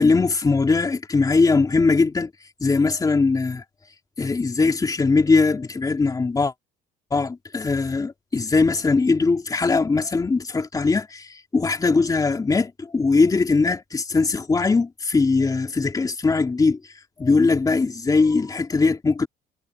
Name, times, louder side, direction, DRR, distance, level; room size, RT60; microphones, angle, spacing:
voice 1, 0.0-2.3 2.6-3.6 4.2-6.5 7.1-16.8 17.2-19.3, left 4 dB, 20° left, 2.9 m, -20 dB
cardioid pair, 110°, 17 cm